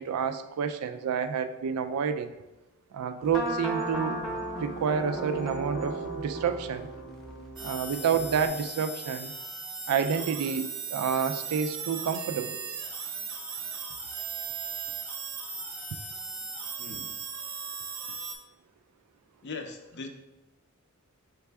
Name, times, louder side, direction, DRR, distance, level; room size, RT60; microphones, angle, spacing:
voice 1, 0.0-2.3 2.9-4.2 4.6-6.9 7.6-9.3 9.9-12.6, right 7 dB, 90° right, 9 dB, 0.3 m, -29 dB
sound 1, 3.2-8.5, right 1 dB, ahead, 0.9 m, -35 dB
sound 2, 7.6-18.3, right 5 dB, 60° right, 0.7 m, -37 dB
voice 2, 16.8-17.1 19.4-20.1, left 4 dB, 50° left, 5 dB, 0.5 m, -40 dB
4.6 x 3.3 x 3.4 m, 1.0 s
head